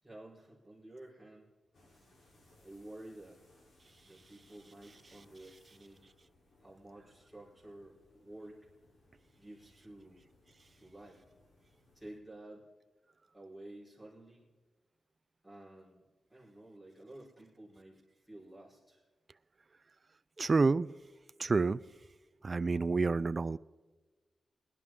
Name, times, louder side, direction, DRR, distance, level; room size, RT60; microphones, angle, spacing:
voice 1, 0.0-1.5 2.6-3.4 4.0-6.0 6.6-8.7 9.4-10.2 10.8-11.2 11.9-12.7 13.3-14.5 15.4-16.0 16.3-19.0, right 1 dB, 5° left, -4 dB, 4.5 m, -52 dB
sound 1, 1.7-12.2, left 2 dB, 60° left, 3.5 m, -67 dB
voice 2, 20.4-20.9 21.4-21.8 22.4-23.6, right 4 dB, 35° right, 16 dB, 0.3 m, -28 dB
21.5 x 11.0 x 3.7 m, 1.3 s
wide cardioid pair, 140°, 0 cm